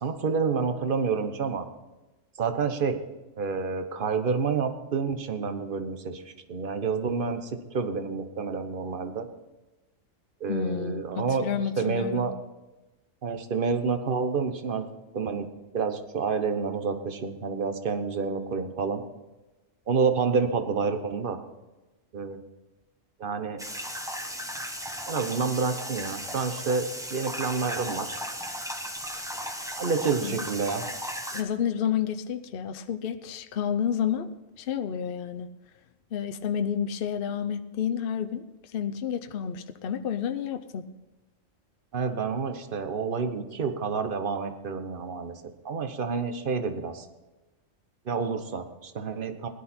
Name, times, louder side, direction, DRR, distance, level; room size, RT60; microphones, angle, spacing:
voice 1, 0.0-1.6 2.4-3.0 3.4-6.2 6.5-9.3 10.4-11.5 11.8-12.3 13.2-14.9 15.1-15.5 15.7-19.0 19.9-21.4 22.1-22.4 23.2-23.6 25.1-28.2 29.8-30.9 41.9-45.3 45.6-47.0 48.1-49.5, right 5 dB, 45° right, 8 dB, 1.2 m, -28 dB
voice 2, 10.5-12.3 30.2-30.4 31.3-34.3 34.6-35.5 36.1-38.4 38.7-40.9, left 8 dB, 50° left, 8 dB, 0.8 m, -30 dB
sound 1, 23.6-31.4, equal, 5° right, 0.9 m, -36 dB
17.0 x 11.5 x 4.4 m, 1.1 s
omnidirectional pair, 1.3 m